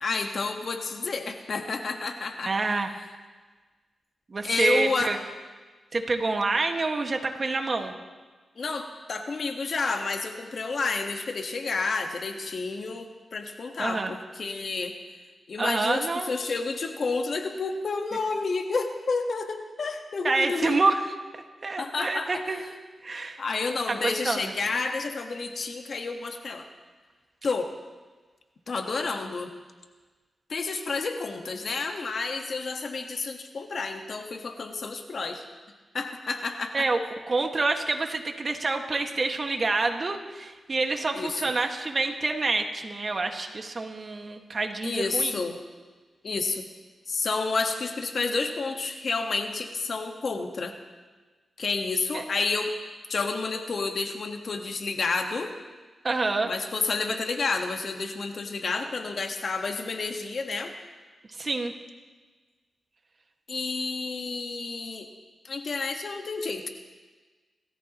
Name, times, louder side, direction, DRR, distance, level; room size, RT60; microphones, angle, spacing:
voice 1, 0.0-2.5 4.4-5.1 8.6-14.9 15.5-20.8 21.8-22.6 23.4-26.6 27.4-27.7 28.7-29.5 30.5-35.4 35.9-36.9 41.1-41.4 44.8-45.6 46.2-46.6 47.1-50.7 51.6-52.7 53.1-55.6 56.4-60.7 63.5-65.1 65.4-66.7, left 4 dB, 60° left, 5 dB, 1.5 m, -30 dB
voice 2, 2.5-2.9 4.3-5.2 5.9-7.9 13.8-14.1 15.6-16.3 20.2-21.0 21.6-22.8 23.0-23.4 23.9-24.5 36.7-37.0 37.3-45.3 52.1-52.2 56.0-56.5 61.3-61.7, right 3 dB, 45° right, 4 dB, 1.7 m, -27 dB
28.0 x 14.0 x 3.0 m, 1.3 s
cardioid pair, 60°, 0 cm